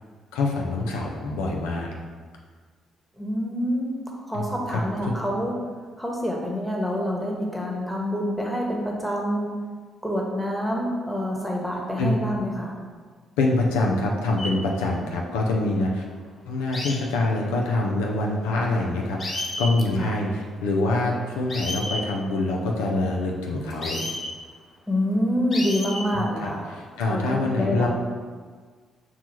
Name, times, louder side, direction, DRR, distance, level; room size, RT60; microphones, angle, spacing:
voice 1, 0.3-1.9 4.3-4.8 5.1-5.2 12.0-12.2 13.4-16.0 16.5-24.0 26.1-27.9, left 2 dB, 85° left, 0 dB, 0.4 m, -25 dB
voice 2, 3.2-4.0 4.3-5.5 6.0-9.5 10.0-12.7 20.0-20.1 24.9-26.7 27.1-27.9, equal, 5° right, -2 dB, 1.1 m, -27 dB
sound 1, 14.4-14.5 16.7-17.0 18.7-18.8 19.2-19.7 21.5-22.0 23.7-24.3 25.5-26.0 26.9-27.3, left 1 dB, 45° left, 1.1 m, -31 dB
5.8 x 2.3 x 2.9 m, 1.5 s
hypercardioid pair, 50°, 0 cm